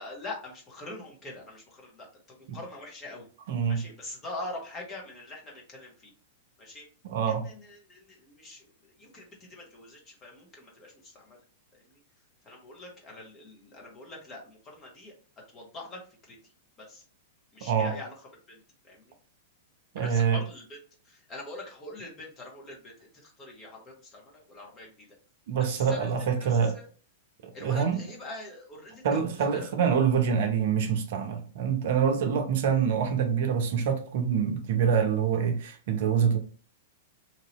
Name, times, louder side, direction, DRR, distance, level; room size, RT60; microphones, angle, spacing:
voice 1, 0.0-3.3 3.7-6.1 6.6-6.8 7.3-11.4 11.7-12.0 12.4-15.1 15.5-16.4 16.8-17.0 17.5-18.1 18.5-19.1 19.9-20.8 21.0-25.1 25.5-26.1 26.5-26.8 27.5-29.7, left 2 dB, 25° left, 1.2 m, -44 dB
voice 2, 3.5-3.8 7.0-7.4 17.6-17.9 19.9-20.4 25.5-26.8 27.6-28.0 29.0-36.4, right 7 dB, 55° right, 0.6 m, -25 dB
2.9 x 2.7 x 2.9 m
figure-of-eight pair, 100°, 0 cm